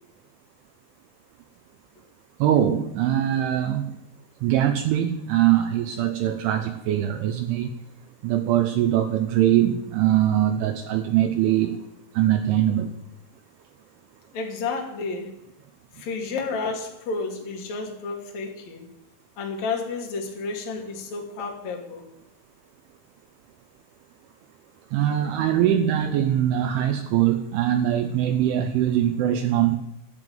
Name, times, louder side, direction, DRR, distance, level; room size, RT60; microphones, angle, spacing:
voice 1, 2.4-4.0 4.4-7.7 8.2-11.8 12.1-12.9 24.9-29.8, right 11 dB, 75° right, 6 dB, 3.0 m, -22 dB
voice 2, 14.3-15.4 15.9-18.9 19.4-22.0, left 4 dB, 45° left, 1 dB, 2.9 m, -31 dB
12.5 x 8.1 x 9.3 m, 0.85 s
omnidirectional pair, 6.0 m